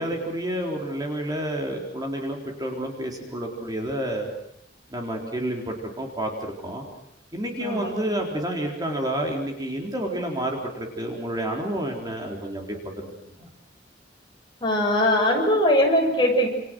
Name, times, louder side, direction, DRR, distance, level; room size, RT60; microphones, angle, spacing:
voice 1, 0.0-4.3 4.9-6.8 7.3-12.7 13.0-13.1 13.4-13.5, right 1 dB, 20° right, 1 dB, 4.1 m, -29 dB
voice 2, 7.6-8.0 14.6-16.5, left 1 dB, 25° left, 1 dB, 7.0 m, -21 dB
28.5 x 28.5 x 6.4 m, 0.77 s
head